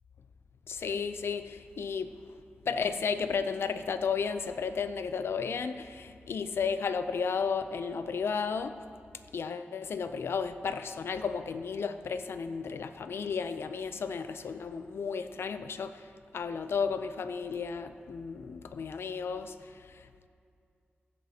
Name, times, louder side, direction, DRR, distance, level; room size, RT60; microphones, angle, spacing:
voice 1, 0.7-2.2 2.7-8.8 9.3-16.1 16.3-20.1, left 5 dB, 90° left, 10 dB, 0.4 m, -33 dB
15.5 x 9.1 x 2.8 m, 2.4 s
wide cardioid pair, 80°, 4 cm